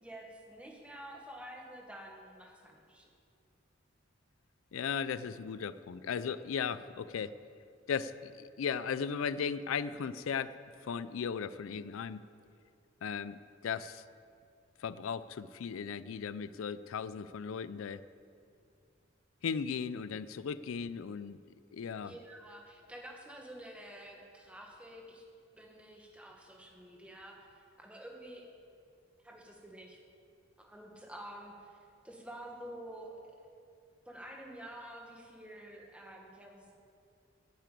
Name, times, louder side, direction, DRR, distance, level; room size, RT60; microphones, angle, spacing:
voice 1, 0.0-3.1 22.0-25.2 25.5-28.4 29.2-30.0 30.6-31.8 32.0-33.2 34.0-36.7, right 1 dB, 5° right, 0 dB, 1.5 m, -49 dB
voice 2, 4.7-7.3 7.9-12.2 13.0-14.0 14.8-18.0 19.4-21.4 21.7-22.1, left 6 dB, 90° left, 15 dB, 0.4 m, -37 dB
10.0 x 9.2 x 8.3 m, 2.4 s
head